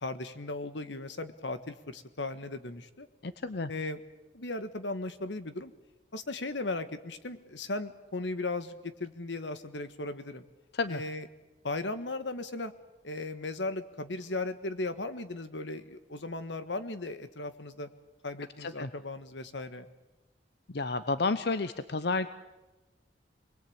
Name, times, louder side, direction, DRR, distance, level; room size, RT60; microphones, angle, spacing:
voice 1, 0.0-3.1 3.7-4.0 4.3-5.7 6.1-10.4 10.9-11.3 11.6-12.7 13.0-17.9 18.2-19.9, left 2 dB, 90° left, 11 dB, 1.6 m, -37 dB
voice 2, 3.2-3.7 10.7-11.0 18.6-18.9 20.7-22.3, left 3 dB, 65° left, 12 dB, 0.8 m, -31 dB
26.5 x 21.0 x 8.8 m, 1.1 s
head